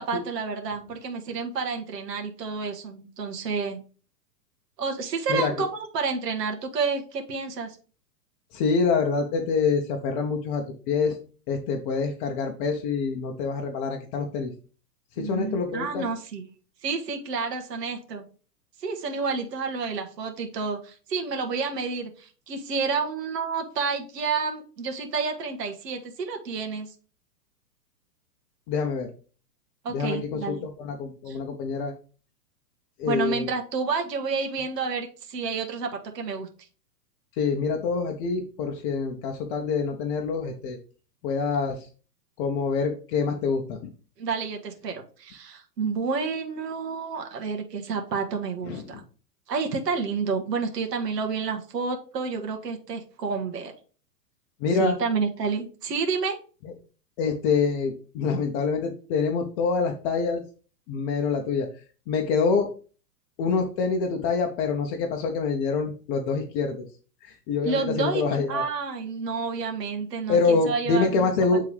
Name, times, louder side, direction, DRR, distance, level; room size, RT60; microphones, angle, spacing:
voice 1, 0.0-3.8 4.8-5.7 5.9-7.8 15.2-16.4 16.8-18.2 18.8-26.9 29.8-30.6 31.3-31.4 33.0-36.5 44.2-49.0 49.5-53.7 54.8-56.4 67.6-68.2 68.5-71.3, right 5 dB, 75° right, 3 dB, 1.4 m, -29 dB
voice 2, 8.5-11.2 11.5-14.5 15.1-16.1 28.7-29.1 29.9-31.9 33.0-33.5 37.3-40.8 41.2-41.9 42.4-43.8 48.6-49.0 54.6-55.0 56.6-56.7 57.2-60.4 60.9-61.7 62.1-62.7 63.4-66.8 67.2-68.6 70.3-71.6, left 5 dB, 35° left, 2 dB, 0.8 m, -26 dB
8.2 x 3.6 x 3.3 m, 0.38 s
hypercardioid pair, 130°, 49 cm